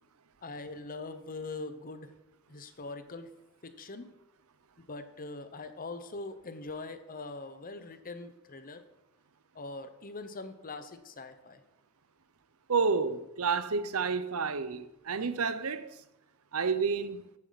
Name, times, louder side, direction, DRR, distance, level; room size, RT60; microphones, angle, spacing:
voice 1, 0.4-2.1 2.5-3.3 3.6-4.1 4.9-8.8 9.5-11.6 15.2-15.3, left 3 dB, 40° left, 1.0 m, -42 dB
voice 2, 12.7-15.9 16.5-17.3, right 5 dB, 80° right, 0.8 m, -30 dB
14.5 x 8.8 x 4.1 m
head